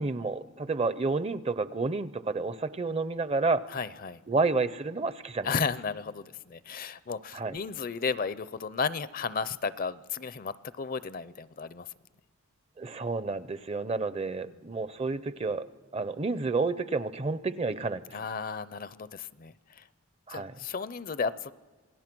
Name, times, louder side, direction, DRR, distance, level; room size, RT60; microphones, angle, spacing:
voice 1, 0.0-3.6 4.3-5.5 7.3-7.6 12.8-15.6 15.9-18.0 20.3-20.5, right 3 dB, 30° right, 15 dB, 0.5 m, -30 dB
voice 2, 3.7-4.2 5.4-11.9 18.1-19.8 20.3-21.5, left 5 dB, 40° left, 16 dB, 0.5 m, -34 dB
27.0 x 18.5 x 6.1 m, 1.4 s
head